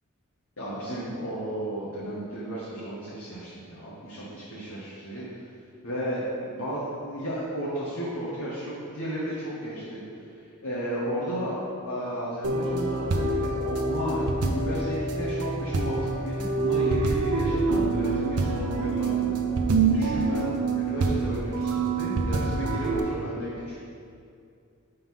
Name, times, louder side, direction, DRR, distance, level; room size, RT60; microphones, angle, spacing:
voice 1, 0.6-5.3 5.8-10.0 10.6-19.3 19.9-23.8, right 1 dB, 65° left, -9 dB, 1.4 m, -33 dB
sound 1, 12.4-23.0, right 3 dB, 90° right, 0.7 m, -26 dB
5.6 x 4.3 x 5.9 m, 2.4 s
head